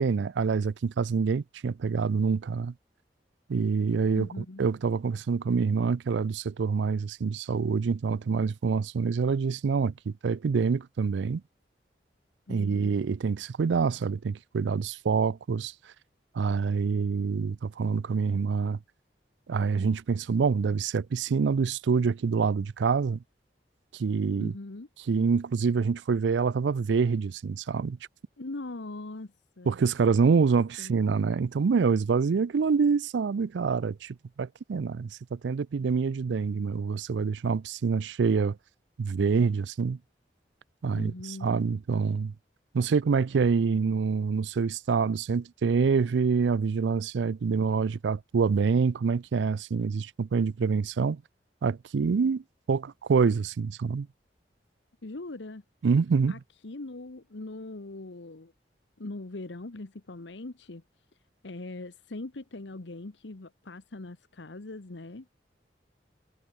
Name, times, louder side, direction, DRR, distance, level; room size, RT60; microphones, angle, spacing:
voice 1, 0.0-2.7 3.5-11.4 12.5-15.7 16.3-18.8 19.5-23.2 23.9-24.5 25.1-28.0 29.7-38.6 39.0-40.0 40.8-41.1 41.4-42.3 42.7-51.2 51.6-52.4 52.7-54.1 55.8-56.3, right 5 dB, 80° right, 0.4 m, -26 dB
voice 2, 4.1-4.7 12.5-13.0 24.4-24.9 28.4-29.8 30.8-31.0 40.9-41.5 55.0-55.6 56.3-56.4 56.6-58.5 59.0-60.8 61.4-65.3, left 2 dB, 85° left, 1.1 m, -41 dB
head